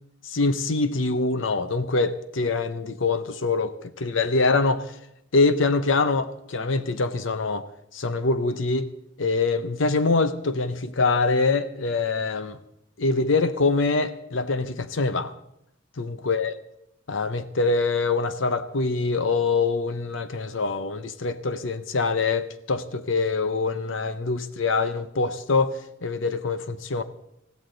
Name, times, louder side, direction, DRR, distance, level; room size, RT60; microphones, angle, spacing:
voice 1, 0.2-4.9 5.3-7.6 7.9-8.9 9.2-12.6 13.0-15.3 16.0-16.6 17.1-27.0, left 3 dB, 70° left, 11 dB, 0.7 m, -24 dB
20.5 x 15.0 x 3.9 m, 0.80 s
head